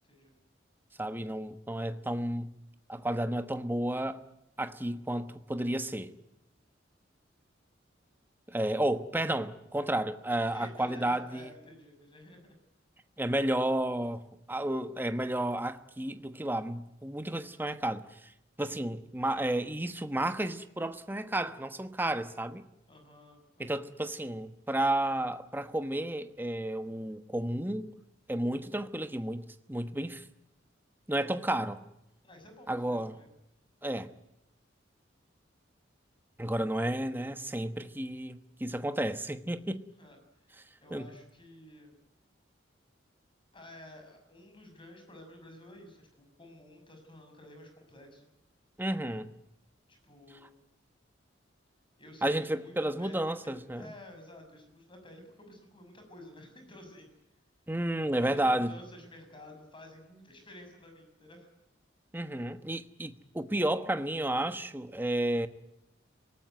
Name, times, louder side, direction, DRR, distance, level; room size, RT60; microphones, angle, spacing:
voice 1, 1.0-2.5 2.9-4.2 4.6-6.1 8.5-11.5 13.2-18.3 18.6-22.6 23.6-27.9 28.3-30.2 31.1-31.8 32.7-33.2 33.8-34.1 36.4-39.8 40.9-41.1 48.8-49.3 52.2-53.9 57.7-58.7 62.1-65.5, right 1 dB, 10° right, 1.2 m, -32 dB
voice 2, 10.5-12.6 22.9-23.8 32.2-33.3 40.0-41.9 43.5-48.3 49.9-50.7 52.0-57.1 58.2-61.5, left 1 dB, 25° left, 6.7 m, -52 dB
26.0 x 18.5 x 9.4 m
head